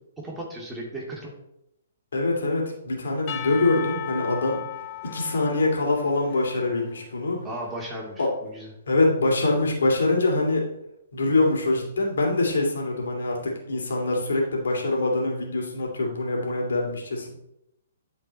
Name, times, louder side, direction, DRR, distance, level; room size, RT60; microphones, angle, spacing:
voice 1, 0.2-1.3 7.4-8.7, right 1 dB, 10° right, -3 dB, 2.4 m, -35 dB
voice 2, 2.1-4.6 5.0-7.4 8.2-8.3 8.9-10.7 11.1-17.3, left 2 dB, 65° left, 0 dB, 2.6 m, -24 dB
Percussion / Church bell, 3.3-7.4, left 12 dB, 35° left, 1.0 m, -37 dB
11.5 x 4.6 x 4.2 m, 0.81 s
figure-of-eight pair, 125°, 0 cm